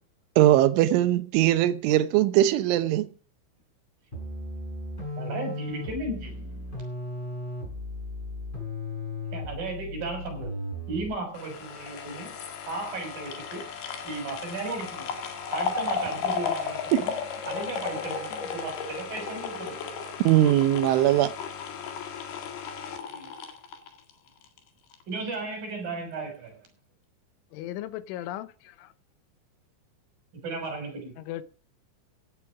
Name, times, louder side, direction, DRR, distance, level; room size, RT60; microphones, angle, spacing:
voice 1, 0.4-3.1 16.9-17.0 20.2-21.3, right 13 dB, 85° right, 3.4 m, -20 dB
sound 1, 4.1-11.3, left 1 dB, 10° left, 6.6 m, -36 dB
voice 2, 5.2-6.6 9.3-10.5 10.9-12.4 12.7-13.6 14.0-15.2 15.5-17.1 17.5-19.9 23.0-23.3 25.1-26.6 30.3-31.1, right 3 dB, 50° right, 7.6 m, -35 dB
sound 2, 11.3-24.6 24.9-25.0, left 6 dB, 60° left, 3.7 m, -34 dB
voice 3, 27.5-28.9 31.2-31.4, left 13 dB, 85° left, 3.4 m, -37 dB
16.0 x 10.5 x 4.9 m
omnidirectional pair, 5.4 m